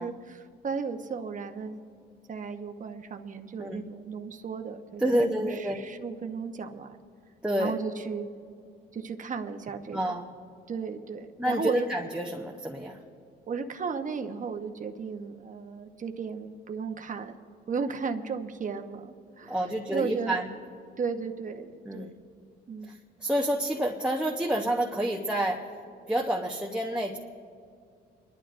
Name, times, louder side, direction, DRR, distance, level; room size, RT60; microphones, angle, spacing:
voice 1, 0.0-1.8 2.3-5.0 5.3-7.0 7.6-8.3 8.9-10.2 10.7-11.9 13.5-17.4 17.7-19.6 19.9-20.4 21.0-22.1 22.7-22.9, right 5 dB, 40° right, 6 dB, 0.9 m, -35 dB
voice 2, 5.0-5.9 7.4-7.7 9.9-10.3 11.4-13.0 19.4-20.5 21.9-22.1 22.8-25.7 26.1-27.2, right 1 dB, 5° right, -1 dB, 0.8 m, -29 dB
29.5 x 11.5 x 2.6 m, 2.4 s
cardioid pair, 90°, 20 cm